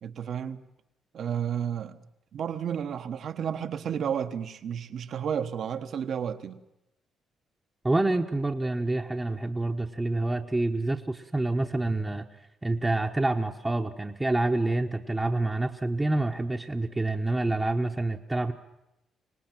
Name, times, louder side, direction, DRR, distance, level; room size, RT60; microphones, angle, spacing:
voice 1, 0.0-0.6 1.1-2.0 2.3-6.6, right 8 dB, 65° right, 1.2 m, -32 dB
voice 2, 7.8-12.2 12.6-18.5, right 2 dB, 15° right, 1.0 m, -27 dB
25.0 x 18.5 x 7.5 m
cardioid pair, 90°, 0 cm